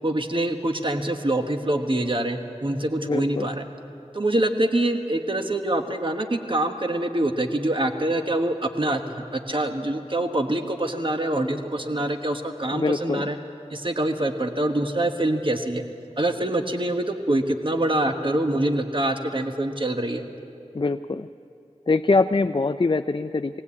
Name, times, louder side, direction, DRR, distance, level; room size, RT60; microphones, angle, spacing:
voice 1, 0.0-3.6 4.1-13.4 13.7-15.8 16.2-20.2, right 1 dB, 45° right, 5 dB, 1.3 m, -25 dB
voice 2, 3.0-3.5 12.7-13.3 20.7-21.3 21.9-23.6, left 3 dB, 40° left, 10 dB, 0.4 m, -23 dB
19.5 x 18.0 x 8.5 m, 2.6 s
wide cardioid pair, 45°, 12 cm